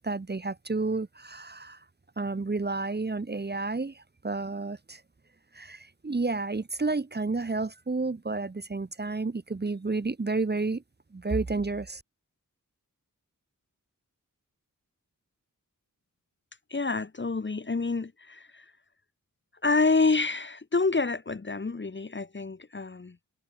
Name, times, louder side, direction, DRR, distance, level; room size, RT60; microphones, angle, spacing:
voice 1, 0.0-1.8 2.2-5.0 5.5-10.8 11.1-12.0, right 3 dB, 30° right, 0.8 m, -31 dB
voice 2, 16.7-18.6 19.6-23.2, left 3 dB, 35° left, 0.8 m, -27 dB
wide cardioid pair, 60°, 34 cm